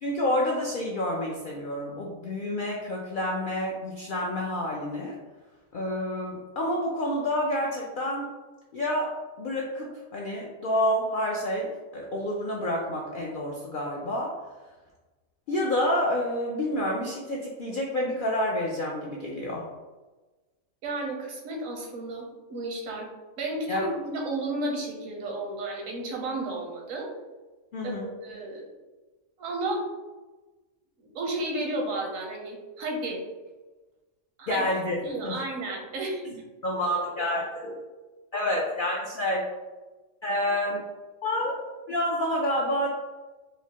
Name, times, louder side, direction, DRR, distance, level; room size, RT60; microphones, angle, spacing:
voice 1, 0.0-5.1 5.7-8.3 8.7-9.1 9.4-14.3 15.5-19.6 23.7-23.9 27.7-28.1 34.5-35.0 35.2-35.4 36.6-37.8 38.3-39.4 40.2-40.8 41.2-41.6 41.9-42.9, left 1 dB, 70° left, -2 dB, 0.5 m, -28 dB
voice 2, 20.8-23.1 23.4-27.1 27.8-28.6 29.4-29.9 31.0-33.2 34.4-34.7 35.0-36.3, right 2 dB, 80° right, 0 dB, 1.1 m, -32 dB
4.7 x 2.0 x 2.8 m, 1.2 s
omnidirectional pair, 1.4 m